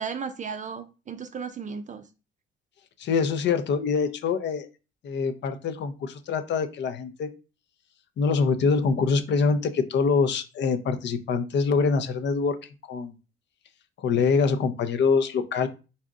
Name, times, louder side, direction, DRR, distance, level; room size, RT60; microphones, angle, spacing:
voice 1, 0.0-2.1, right 6 dB, 40° right, 8 dB, 0.4 m, -35 dB
voice 2, 3.0-4.7 5.0-7.3 8.2-12.6 12.9-13.1 14.0-15.7, left 5 dB, 65° left, 10 dB, 0.6 m, -24 dB
4.1 x 2.5 x 3.6 m, 0.32 s
cardioid pair, 90°, 20 cm